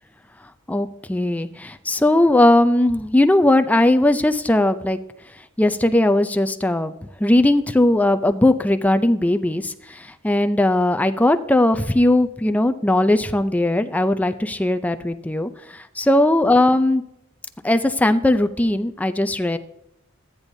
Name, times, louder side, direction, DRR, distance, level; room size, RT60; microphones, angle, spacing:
voice 1, 0.7-5.0 5.6-6.9 7.2-17.0 17.6-19.6, left 1 dB, 10° left, 9 dB, 0.4 m, -18 dB
13.5 x 9.7 x 2.7 m, 0.82 s
head